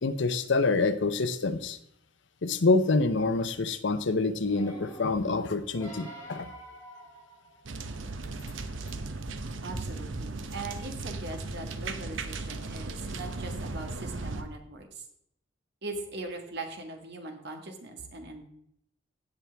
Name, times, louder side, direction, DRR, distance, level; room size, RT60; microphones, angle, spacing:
voice 1, 0.0-1.8 2.4-6.5, left 3 dB, 65° left, 11 dB, 0.7 m, -26 dB
sound 1, 4.5-8.0 8.6-8.7, right 1 dB, 15° left, 3.5 m, -47 dB
sound 2, 7.6-14.4, right 3 dB, 80° right, 0.8 m, -37 dB
voice 2, 9.6-15.0 15.8-18.5, right 2 dB, 60° right, 4 dB, 1.7 m, -40 dB
16.5 x 6.0 x 3.5 m, 0.74 s
head